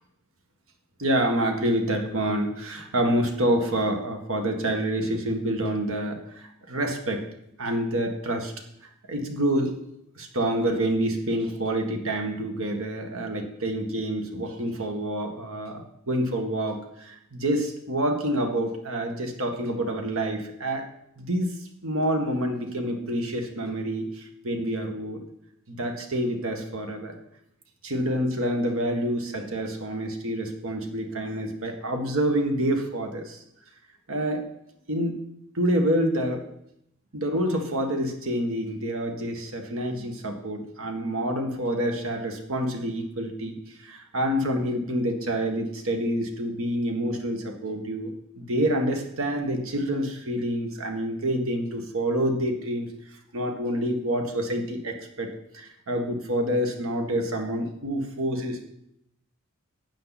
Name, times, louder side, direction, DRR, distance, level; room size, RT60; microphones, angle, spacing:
voice 1, 1.0-7.3 7.6-8.5 9.1-9.7 10.2-20.9 21.2-25.2 25.7-27.2 27.8-33.4 34.1-34.5 34.9-35.2 35.5-36.5 37.1-48.1 48.4-52.9 53.3-58.7, right 1 dB, 65° right, 4 dB, 1.7 m, -27 dB
12.0 x 8.7 x 4.1 m, 0.77 s
head